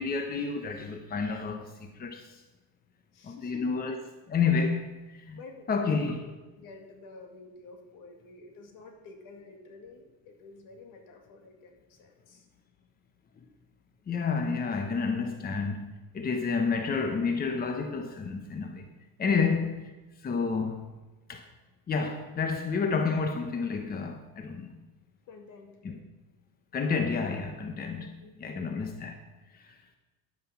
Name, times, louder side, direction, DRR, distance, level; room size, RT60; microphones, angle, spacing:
voice 1, 0.0-2.4 3.2-4.0 4.3-5.4 5.7-6.2 14.1-18.8 19.2-19.7 20.2-20.9 21.3-21.4 21.9-24.7 25.8-26.0 26.7-28.1 28.4-29.1 29.5-29.8, left 5 dB, 25° left, 1.0 m, -30 dB
voice 2, 3.1-4.0 5.3-12.5 19.4-19.6 25.3-25.8 28.0-28.8, left 3 dB, 70° left, 2.2 m, -50 dB
10.5 x 9.1 x 5.8 m
cardioid pair, 130°, 34 cm